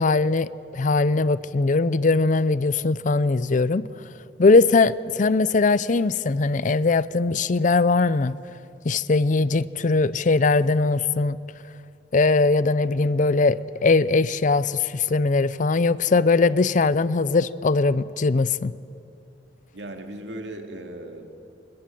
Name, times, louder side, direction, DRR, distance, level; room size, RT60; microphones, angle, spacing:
voice 1, 0.0-3.8 4.4-8.3 8.8-11.4 12.1-18.7, left 3 dB, 45° left, 18 dB, 0.5 m, -20 dB
voice 2, 19.7-21.4, right 1 dB, 80° right, 4 dB, 2.4 m, -37 dB
25.5 x 20.5 x 7.7 m, 2.7 s
head